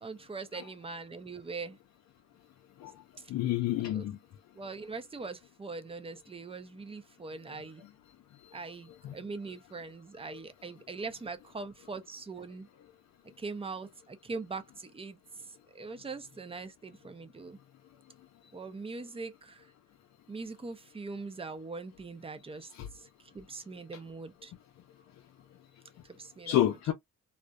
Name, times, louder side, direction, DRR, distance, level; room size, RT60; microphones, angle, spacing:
voice 1, 0.0-1.8 3.9-4.1 4.5-7.8 8.5-12.7 13.4-15.2 15.7-17.6 18.5-19.6 20.3-23.1 23.3-24.5 26.2-26.6, right 4 dB, 20° right, 0.5 m, -42 dB
voice 2, 3.3-4.2 9.0-9.1 22.7-22.9 26.5-26.9, left 13 dB, 65° left, 0.5 m, -29 dB
2.6 x 2.0 x 2.2 m
cardioid pair, 90°, 30 cm